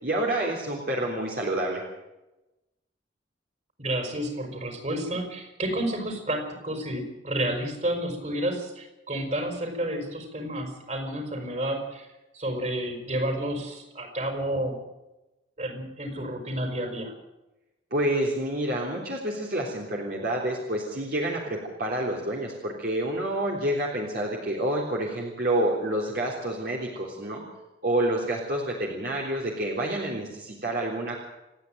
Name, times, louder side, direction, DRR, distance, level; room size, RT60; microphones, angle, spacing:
voice 1, 0.0-1.8 17.9-27.4 27.8-31.2, right 1 dB, 60° right, -2 dB, 3.6 m, -28 dB
voice 2, 3.8-12.1 12.3-14.8 15.6-17.1, right 1 dB, 40° right, 4 dB, 5.4 m, -30 dB
29.0 x 9.9 x 9.1 m, 0.99 s
head